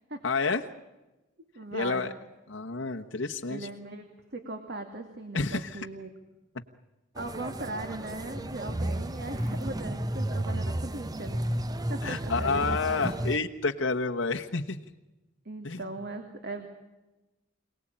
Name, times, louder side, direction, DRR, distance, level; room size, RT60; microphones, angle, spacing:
voice 1, 0.2-0.6 1.7-2.1 2.5-3.6 5.3-5.8 12.0-14.8 15.6-15.8, left 4 dB, 75° left, 3 dB, 1.3 m, -29 dB
voice 2, 1.6-2.1 3.5-6.1 7.2-11.4 11.9-12.7 15.4-16.7, right 2 dB, 55° right, 5 dB, 2.5 m, -39 dB
sound 1, 7.2-13.4, right 1 dB, 20° right, 0.8 m, -32 dB
27.5 x 19.0 x 8.9 m, 1.1 s
head